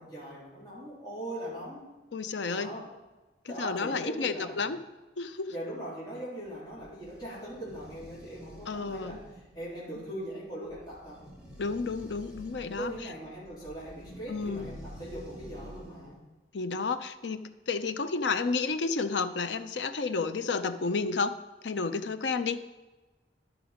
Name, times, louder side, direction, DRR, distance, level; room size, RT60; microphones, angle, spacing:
voice 1, 0.0-1.8 2.5-2.9 3.5-4.7 5.5-9.2 9.5-11.2 12.8-16.2, right 1 dB, 25° left, -10 dB, 3.7 m, -40 dB
voice 2, 2.1-2.7 3.4-4.8 5.2-5.5 8.7-9.2 11.6-12.9 14.3-14.7 16.5-17.4 17.7-21.3 21.6-22.6, left 4 dB, 85° left, 10 dB, 0.6 m, -31 dB
sound 1, 6.4-16.2, equal, 5° right, 2.7 m, -49 dB
12.0 x 6.1 x 5.1 m, 1.2 s
head